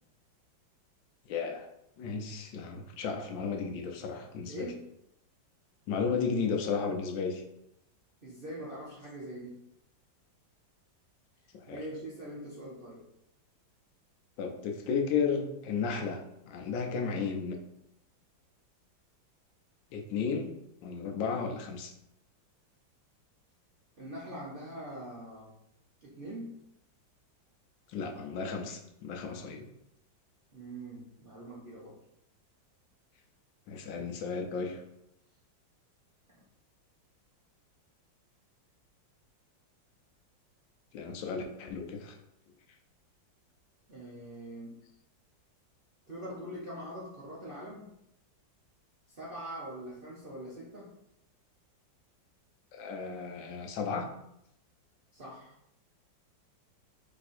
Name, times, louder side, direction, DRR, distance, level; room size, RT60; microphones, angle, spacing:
voice 1, 1.3-1.7 2.0-4.7 5.9-7.4 11.5-11.8 14.4-17.6 19.9-20.5 20.8-21.9 27.9-29.7 33.7-34.8 40.9-42.2 52.7-54.1, left 5 dB, 80° left, 3 dB, 1.4 m, -34 dB
voice 2, 4.5-4.8 8.2-9.6 11.7-13.0 24.0-25.5 26.0-26.6 30.5-32.0 36.3-36.4 43.9-44.8 46.1-47.9 49.1-50.9 55.1-55.6, right 1 dB, 50° right, -6 dB, 0.6 m, -43 dB
3.4 x 3.4 x 4.2 m, 0.79 s
omnidirectional pair, 2.1 m